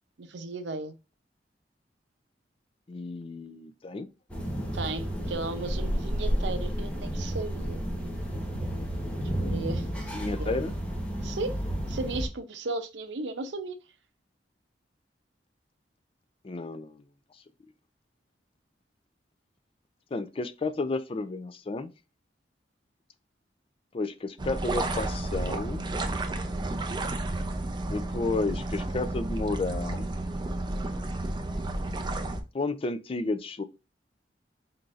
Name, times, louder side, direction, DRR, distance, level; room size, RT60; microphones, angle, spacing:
voice 1, 0.2-0.9 4.7-7.8 9.4-10.1 10.4-10.5 11.2-11.5 11.9-13.8, right 3 dB, 80° right, 0.7 m, -35 dB
voice 2, 2.9-4.1 10.1-10.7 16.4-16.9 20.1-21.9 23.9-25.8 27.9-30.1 32.5-33.6, left 3 dB, 30° left, 0.4 m, -32 dB
sound 1, 4.3-12.3, equal, 10° left, 1.1 m, -31 dB
sound 2, 24.4-32.4, right 2 dB, 25° right, 0.5 m, -31 dB
4.4 x 3.8 x 2.5 m
head